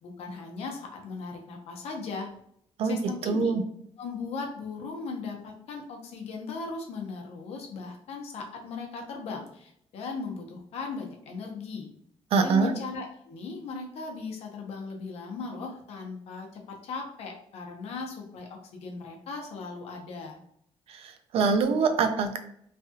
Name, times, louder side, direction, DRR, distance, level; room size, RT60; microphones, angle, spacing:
voice 1, 0.0-2.3 2.8-3.5 4.0-11.9 12.4-20.4, left 4 dB, 85° left, 2 dB, 0.7 m, -38 dB
voice 2, 3.2-3.6 12.3-12.7 20.9-22.4, right 4 dB, 70° right, 6 dB, 0.4 m, -24 dB
3.3 x 2.3 x 2.7 m, 0.69 s
cardioid pair, 140°, 10 cm